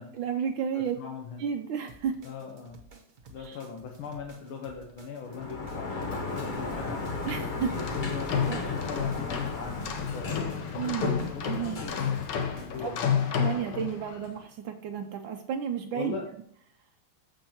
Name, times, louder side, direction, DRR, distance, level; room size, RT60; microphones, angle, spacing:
voice 1, 0.1-1.0 1.4-2.2 3.4-3.6 7.3-7.8 8.5-8.6 10.7-11.1 11.4-11.8 12.8-12.9 13.3-16.2, right 8 dB, 75° right, 5 dB, 1.4 m, -32 dB
voice 2, 0.7-1.4 2.2-2.8 3.3-7.0 7.8-10.3 11.3-12.2 12.5-13.1 15.9-16.3, left 6 dB, 90° left, 1 dB, 1.9 m, -40 dB
sound 1, 1.9-12.9, right 4 dB, 50° right, 1.4 m, -53 dB
Sliding door, 5.3-13.0, left 3 dB, 45° left, 0.6 m, -35 dB
sound 2, 7.7-14.3, left 7 dB, 65° left, 1.5 m, -31 dB
14.0 x 5.3 x 2.9 m, 0.66 s
omnidirectional pair, 2.3 m